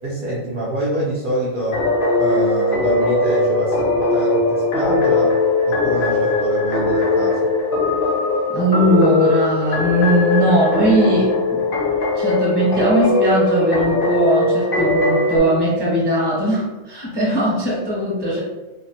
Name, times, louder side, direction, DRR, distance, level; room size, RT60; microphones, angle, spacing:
voice 1, 0.0-1.8 2.2-5.4 5.7-7.4, equal, 70° right, -6 dB, 0.5 m, -25 dB
sound 1, 1.7-15.4, left 2 dB, 60° left, 0.6 m, -19 dB
voice 2, 8.5-11.7 12.1-18.4, equal, 20° right, -5 dB, 0.7 m, -19 dB
2.9 x 2.0 x 2.7 m, 1.1 s
omnidirectional pair, 1.4 m